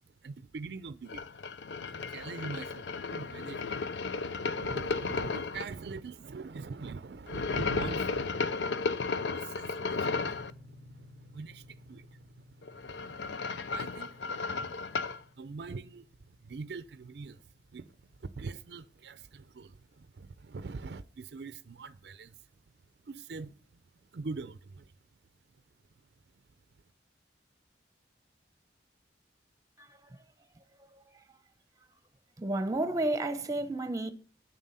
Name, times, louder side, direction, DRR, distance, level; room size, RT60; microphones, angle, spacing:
voice 1, 0.1-1.2 1.9-3.8 4.6-15.0 15.4-17.4 17.7-17.9 18.2-22.4 23.0-23.8 24.1-24.9, right 4 dB, 65° right, 0.5 m, -44 dB
sound 1, 1.1-5.6 7.3-10.5 12.6-15.2, left 4 dB, 90° left, 0.6 m, -34 dB
sound 2, 10.0-20.1, left 2 dB, 40° left, 1.6 m, -58 dB
voice 2, 29.8-30.2 30.5-30.6 30.9-31.4 32.4-34.1, right 2 dB, 20° right, 0.8 m, -33 dB
8.9 x 7.4 x 5.5 m
head